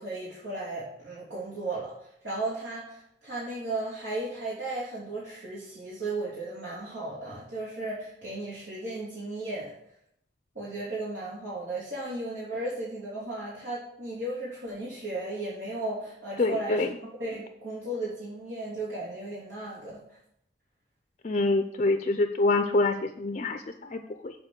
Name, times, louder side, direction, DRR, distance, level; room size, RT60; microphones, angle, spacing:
voice 1, 0.0-9.7 10.5-16.9 17.2-19.9, right 2 dB, 85° right, -9 dB, 3.4 m, -35 dB
voice 2, 16.4-16.9 21.2-24.3, left 2 dB, 40° left, 7 dB, 0.4 m, -26 dB
8.1 x 4.3 x 6.7 m, 0.73 s
head